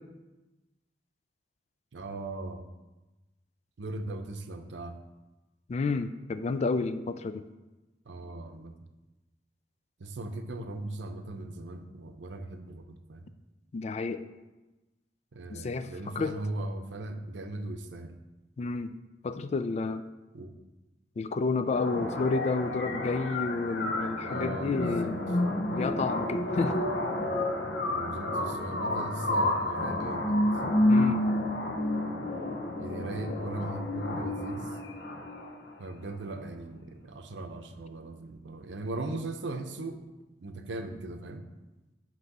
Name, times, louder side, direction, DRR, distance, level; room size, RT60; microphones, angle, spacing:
voice 1, 1.9-2.6 3.8-4.9 8.1-8.7 10.0-13.3 15.3-18.2 20.3-20.5 24.2-25.1 27.9-30.4 32.8-34.7 35.8-39.9 40.4-41.4, right 2 dB, 90° right, 7 dB, 0.6 m, -38 dB
voice 2, 5.7-7.4 13.7-14.2 15.5-15.9 16.1-16.4 18.6-18.9 19.2-20.0 21.2-25.2 25.7-26.9 30.9-31.2, left 3 dB, 40° left, 11 dB, 0.3 m, -30 dB
sound 1, 21.7-35.7, left 1 dB, 65° left, 0.9 m, -30 dB
8.1 x 3.0 x 5.8 m, 1.1 s
head